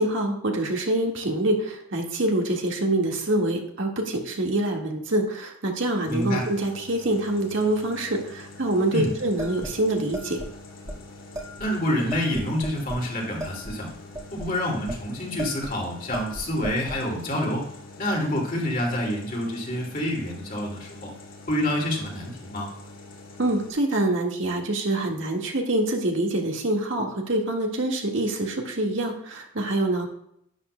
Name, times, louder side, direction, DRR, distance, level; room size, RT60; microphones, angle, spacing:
voice 1, 0.0-10.4 23.4-30.1, right 1 dB, 65° right, 1 dB, 1.7 m, -25 dB
sound 1, 6.0-23.7, left 2 dB, 70° left, 2.4 m, -45 dB
voice 2, 6.1-6.4 8.9-9.1 11.6-13.9 14.3-17.7 18.0-21.1 21.5-22.7, left 1 dB, 40° left, -1 dB, 2.4 m, -27 dB
sound 2, 9.4-10.5 10.9-11.0 11.3-11.7 12.1-13.1 13.4-15.0 15.4-15.8 16.1-17.0, right 1 dB, 20° right, 1.7 m, -36 dB
11.5 x 10.5 x 2.2 m, 0.74 s
head